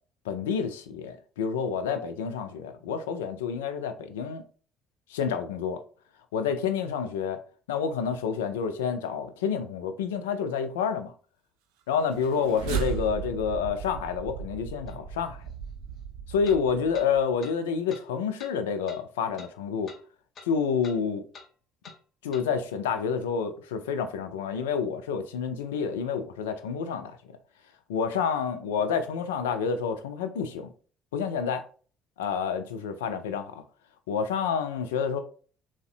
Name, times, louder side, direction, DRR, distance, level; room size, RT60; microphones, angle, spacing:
voice 1, 0.3-4.4 5.1-5.8 6.3-7.4 7.7-11.1 11.9-15.4 16.3-19.9 20.4-21.2 22.2-27.1 27.9-30.7 31.1-31.6 32.2-33.5 34.1-35.2, left 6 dB, 85° left, 0.3 m, -29 dB
sound 1, 12.0-17.4, right 7 dB, 75° right, 0.4 m, -36 dB
sound 2, 14.9-15.0 16.4-16.6 16.9-17.1 17.4-17.5 17.9-18.0 18.4-18.5 18.9-19.0 19.4-19.5 19.9-20.0 20.3-20.5 20.8-21.0 21.3-21.5 21.8-22.0 22.3-22.5, left 4 dB, 55° left, 0.7 m, -47 dB
3.6 x 2.1 x 2.4 m
hypercardioid pair, 55°, 0 cm